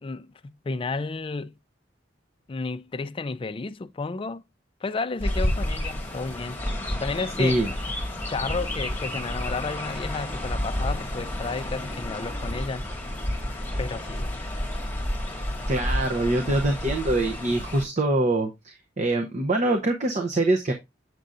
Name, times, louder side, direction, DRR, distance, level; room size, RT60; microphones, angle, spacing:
voice 1, 0.0-1.5 2.5-4.5 4.8-6.6 7.0-7.7 8.3-12.9 13.8-14.3, left 3 dB, 30° left, 0.4 m, -32 dB
Chirp tweet, 5.2-17.8, left 1 dB, 10° left, 1.8 m, -30 dB
voice 2, 15.4-20.7, right 2 dB, 40° right, 0.8 m, -24 dB
7.6 x 6.9 x 2.5 m
head